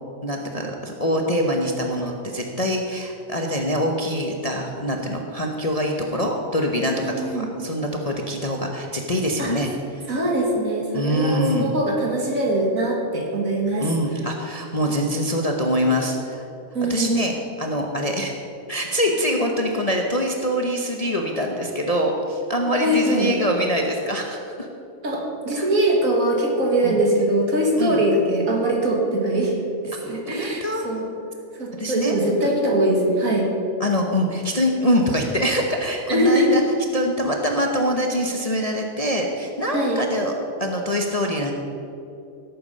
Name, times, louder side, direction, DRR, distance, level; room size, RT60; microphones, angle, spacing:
voice 1, 0.2-9.7 10.9-11.7 13.8-16.4 16.9-17.3 17.6-18.3 18.7-24.7 25.6-25.7 26.8-27.0 27.8-28.0 30.0-30.8 31.8-32.1 32.4-32.6 33.8-36.6 36.9-40.3 40.6-41.5, equal, 30° left, 1 dB, 0.9 m, -24 dB
voice 2, 6.9-7.5 9.4-9.5 10.1-13.9 16.7-17.3 22.6-23.3 25.0-29.5 29.8-31.1 31.6-33.5 36.1-36.6 39.7-40.0, right 1 dB, 60° right, -1 dB, 2.5 m, -22 dB
16.5 x 8.5 x 5.4 m, 2.7 s
omnidirectional pair, 1.6 m